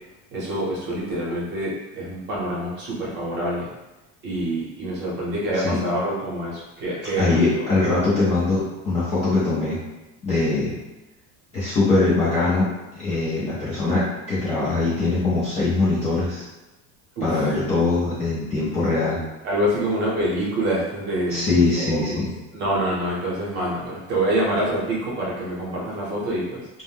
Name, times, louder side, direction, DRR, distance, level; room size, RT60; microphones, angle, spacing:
voice 1, 0.3-3.7 4.2-7.6 17.2-17.5 19.4-21.5 21.7-22.2 22.5-26.7, right 1 dB, 30° right, -5 dB, 0.8 m, -26 dB
voice 2, 7.2-9.8 10.2-10.7 11.5-12.7 12.9-16.4 17.2-19.2 21.3-22.3, left 3 dB, 20° left, -11 dB, 0.3 m, -22 dB
2.5 x 2.1 x 3.4 m, 1.0 s
cardioid pair, 175°, 36 cm